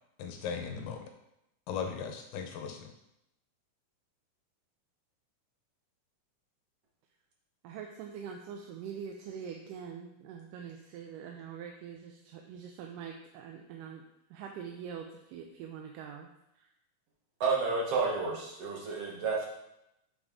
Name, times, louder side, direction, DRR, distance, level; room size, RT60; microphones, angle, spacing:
voice 1, 0.2-1.0 1.7-2.9, left 6 dB, 90° left, 4 dB, 2.5 m, -37 dB
voice 2, 7.6-14.0 14.3-16.3 16.6-16.7, right 7 dB, 85° right, 2 dB, 2.1 m, -44 dB
voice 3, 17.4-19.5, right 4 dB, 60° right, -3 dB, 1.9 m, -30 dB
8.3 x 4.0 x 3.6 m, 0.84 s
omnidirectional pair, 3.8 m